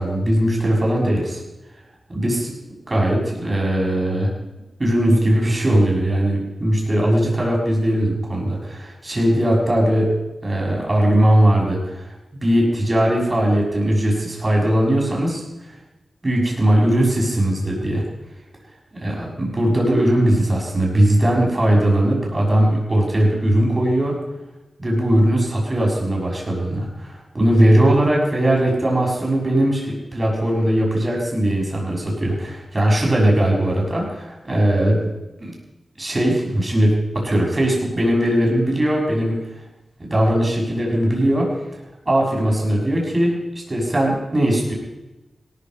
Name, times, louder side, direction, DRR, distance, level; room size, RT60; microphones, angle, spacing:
voice 1, 0.0-1.4 2.1-2.5 2.9-4.3 4.8-10.1 10.4-12.1 12.4-15.4 16.2-18.0 19.0-24.2 24.8-35.0 35.4-35.5 36.0-39.4 40.1-41.5 42.1-43.4 43.7-44.7, right 1 dB, 35° right, -2 dB, 6.5 m, -19 dB
17.5 x 14.0 x 5.4 m, 1.0 s
cardioid pair, 60°, 0 cm